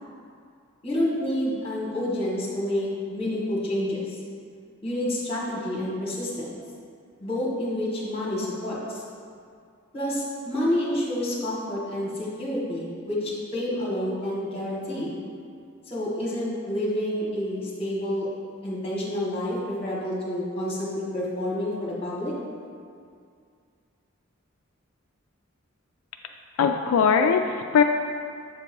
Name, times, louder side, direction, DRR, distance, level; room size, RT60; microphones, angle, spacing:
voice 1, 0.8-4.2 4.8-6.6 7.2-9.0 9.9-15.1 15.9-18.3 18.6-22.3, left 1 dB, 25° left, -5 dB, 1.4 m, -29 dB
voice 2, 26.6-27.8, left 6 dB, 80° left, 5 dB, 0.3 m, -20 dB
7.4 x 2.8 x 5.2 m, 2.3 s
head